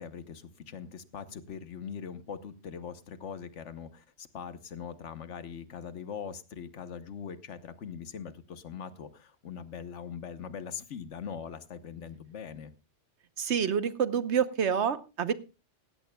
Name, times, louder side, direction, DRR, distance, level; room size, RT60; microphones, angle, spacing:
voice 1, 0.0-12.7, left 7 dB, 80° left, 12 dB, 1.3 m, -41 dB
voice 2, 13.4-15.3, right 7 dB, 70° right, 13 dB, 1.2 m, -27 dB
17.5 x 15.5 x 2.3 m, 0.30 s
omnidirectional pair, 1.2 m